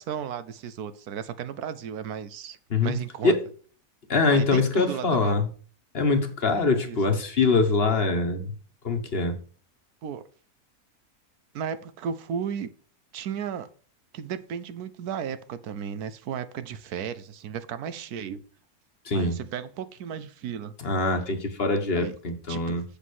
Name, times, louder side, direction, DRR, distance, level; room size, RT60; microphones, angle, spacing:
voice 1, 0.0-2.6 2.8-3.3 4.3-5.4 6.9-7.0 10.0-10.2 11.5-12.7 13.1-13.7 14.1-18.4 19.1-20.7 21.9-22.1 22.5-22.8, right 8 dB, 80° right, 13 dB, 1.2 m, -34 dB
voice 2, 4.1-5.5 5.9-8.5 8.8-9.4 19.0-19.4 20.8-22.8, left 3 dB, 40° left, 5 dB, 1.4 m, -23 dB
7.5 x 5.1 x 6.2 m, 0.42 s
omnidirectional pair, 1.7 m